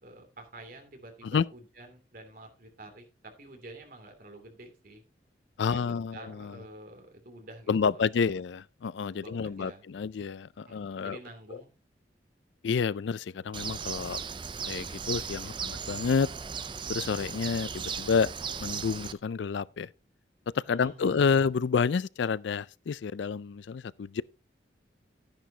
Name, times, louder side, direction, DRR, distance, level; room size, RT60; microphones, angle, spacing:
voice 1, 0.0-5.0 5.7-8.4 9.1-9.9 10.6-11.7 20.7-21.4, right 1 dB, 50° right, 2.7 m, -49 dB
voice 2, 5.6-6.6 7.7-11.2 12.6-14.2 14.6-16.3 16.9-18.3 18.6-19.9 20.5-24.2, left 5 dB, 70° left, 0.4 m, -29 dB
Bird, 13.5-19.1, right 6 dB, 25° right, 0.5 m, -37 dB
11.5 x 10.5 x 2.8 m
head